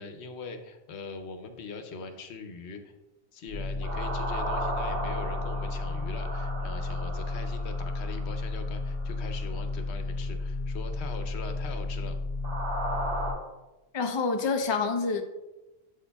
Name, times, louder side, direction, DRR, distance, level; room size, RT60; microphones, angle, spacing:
voice 1, 0.0-2.9 3.3-12.2, left 4 dB, 85° left, 7 dB, 1.0 m, -41 dB
sound 1, 3.5-13.3, left 2 dB, 60° right, 3.0 m, -32 dB
voice 2, 13.9-15.2, left 4 dB, 30° left, 5 dB, 0.6 m, -27 dB
8.4 x 7.6 x 2.3 m, 1.1 s
omnidirectional pair, 1.1 m